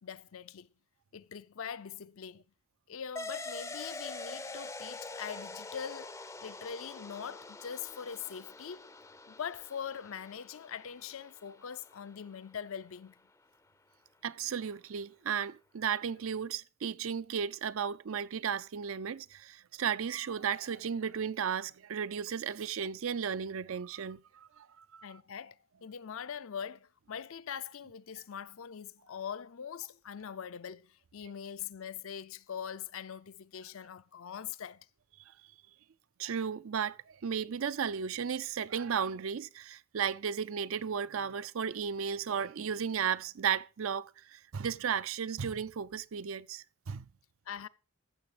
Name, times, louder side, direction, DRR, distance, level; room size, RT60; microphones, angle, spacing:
voice 1, 0.0-0.7 1.1-2.4 2.9-8.9 9.3-13.2 25.0-34.9 47.5-47.7, left 8 dB, 65° left, 0.5 m, -42 dB
sound 1, 3.2-12.2, left 3 dB, 15° left, 0.5 m, -45 dB
voice 2, 14.2-25.1 36.2-47.1, right 7 dB, 60° right, 0.5 m, -34 dB
14.5 x 7.0 x 4.9 m
head